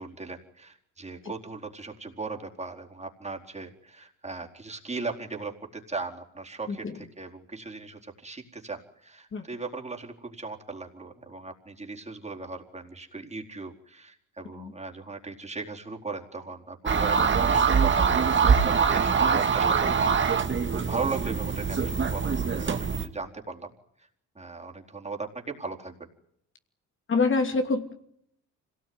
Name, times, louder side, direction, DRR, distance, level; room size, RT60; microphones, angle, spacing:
voice 1, 0.0-23.7 24.3-26.0, right 4 dB, 20° right, 1 dB, 4.3 m, -38 dB
sound 1, 16.9-23.1, right 6 dB, 40° right, 2.4 m, -23 dB
voice 2, 27.1-27.9, left 4 dB, 40° left, 6 dB, 2.8 m, -25 dB
26.0 x 18.5 x 9.7 m, 0.70 s
cardioid pair, 90°, 30 cm